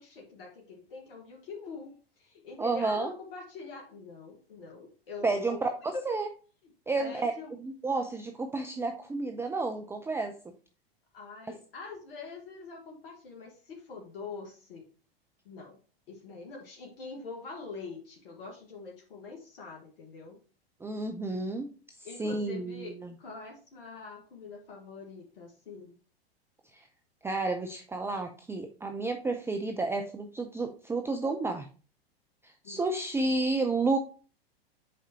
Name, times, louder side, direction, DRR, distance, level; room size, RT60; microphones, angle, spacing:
voice 1, 0.0-6.2 7.0-7.5 11.1-14.9 15.4-15.8 16.1-20.4 22.0-25.9 32.6-32.8, left 4 dB, 65° left, 0 dB, 1.6 m, -44 dB
voice 2, 2.6-3.1 5.2-6.3 6.9-7.3 7.6-10.3 11.5-11.6 20.8-21.7 22.2-23.1 26.7-26.8 27.2-31.7 32.4-34.0, right 3 dB, 10° right, 6 dB, 0.6 m, -31 dB
7.5 x 5.0 x 2.8 m, 0.37 s
hypercardioid pair, 100°, 30 cm